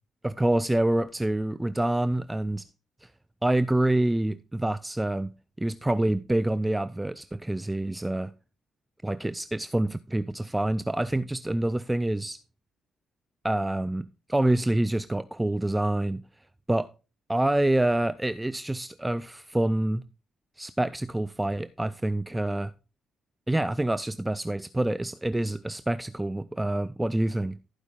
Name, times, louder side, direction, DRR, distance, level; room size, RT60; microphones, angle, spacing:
voice 1, 0.2-2.7 3.0-3.1 3.4-5.3 5.6-8.3 9.0-12.4 13.4-16.2 16.7-16.9 17.3-20.0 20.6-22.7 23.5-27.6, right 1 dB, 10° right, 0.4 m, -27 dB
15.0 x 5.0 x 3.7 m
cardioid pair, 90°, 0 cm